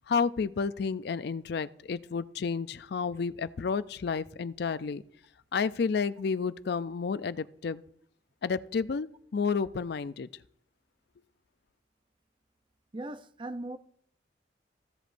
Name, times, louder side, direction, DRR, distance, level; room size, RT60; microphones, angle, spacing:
voice 1, 0.1-5.0 5.5-7.8 8.4-10.3, left 5 dB, 60° left, 0.4 m, -31 dB
voice 2, 12.9-13.8, right 1 dB, 25° right, 0.5 m, -38 dB
15.5 x 8.0 x 2.6 m
head